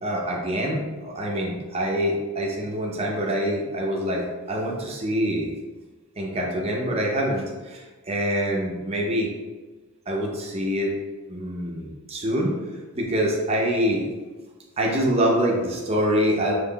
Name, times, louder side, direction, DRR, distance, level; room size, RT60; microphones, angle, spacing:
voice 1, 0.0-5.5 6.2-7.4 7.7-9.3 10.1-10.9 11.3-12.5 12.9-14.0 14.8-16.5, equal, 25° right, -2 dB, 0.6 m, -25 dB
5.5 x 3.0 x 2.3 m, 1.2 s
head